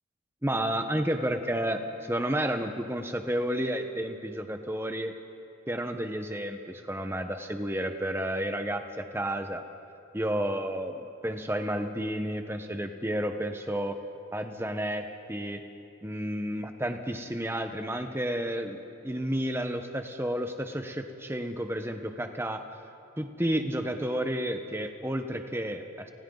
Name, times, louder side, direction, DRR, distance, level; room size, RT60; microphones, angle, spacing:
voice 1, 0.4-5.1 5.7-9.6 10.1-14.0 14.3-15.6 16.0-22.7 23.2-26.1, right 1 dB, 10° right, 6 dB, 1.2 m, -31 dB
30.0 x 29.5 x 4.0 m, 2.6 s
head